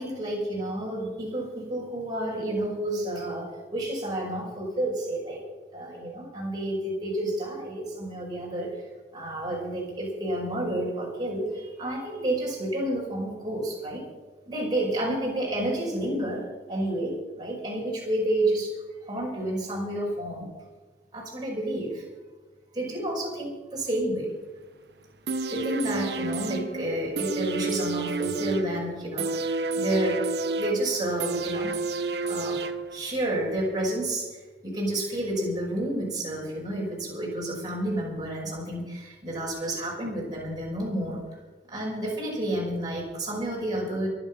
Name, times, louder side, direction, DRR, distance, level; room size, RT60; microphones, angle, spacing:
voice 1, 0.0-5.4 5.7-8.8 9.1-14.0 14.5-18.8 19.0-20.5 21.1-22.0 22.7-24.4 25.5-30.3 30.6-31.7 32.3-32.6 32.9-34.3 34.6-41.2 41.7-44.1, right 1 dB, 25° right, -4 dB, 5.8 m, -30 dB
sound 1, 25.3-33.2 33.6-33.7, right 3 dB, 70° right, 1.0 m, -30 dB
23.5 x 9.0 x 5.7 m, 1.3 s
head